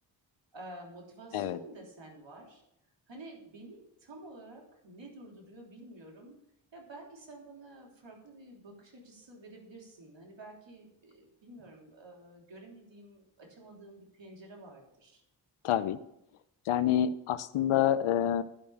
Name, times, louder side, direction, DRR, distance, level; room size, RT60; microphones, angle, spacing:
voice 1, 0.5-2.6 3.1-6.4 6.7-15.2, right 2 dB, 60° right, -1 dB, 3.4 m, -50 dB
voice 2, 15.6-16.0 16.7-18.4, left 10 dB, 80° left, 13 dB, 0.7 m, -27 dB
11.5 x 5.3 x 7.0 m, 0.81 s
cardioid pair, 45°, 49 cm